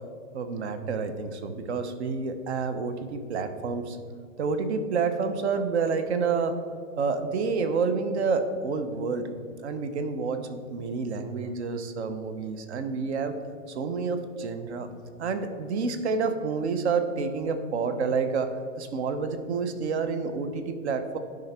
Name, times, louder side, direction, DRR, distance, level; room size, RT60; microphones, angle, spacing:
voice 1, 0.3-4.0 4.4-6.6 7.0-9.3 9.6-13.3 13.7-14.9 15.2-18.5 18.8-21.2, right 5 dB, 55° right, 9 dB, 0.9 m, -29 dB
11.5 x 5.1 x 4.3 m, 2.2 s
hypercardioid pair, 165°, 40 cm